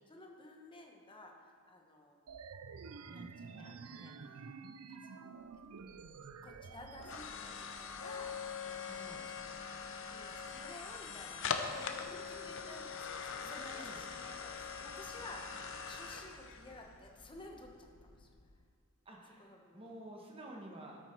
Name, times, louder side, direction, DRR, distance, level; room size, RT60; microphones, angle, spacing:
voice 1, 0.1-2.2 3.1-4.4 4.9-5.2 6.4-8.3 8.7-9.2 9.8-18.3 19.4-19.9, left 2 dB, 20° left, 2 dB, 1.1 m, -54 dB
sound 1, 2.3-7.3, right 5 dB, 85° right, 0.5 m, -50 dB
voice 2, 3.1-3.7 8.8-9.2 11.9-12.9 13.4-14.0 19.0-21.0, right 1 dB, 25° right, -1 dB, 1.4 m, -52 dB
sound 2, 5.5-18.6, left 6 dB, 60° left, 0.7 m, -43 dB
13.0 x 7.6 x 4.5 m, 2.1 s
head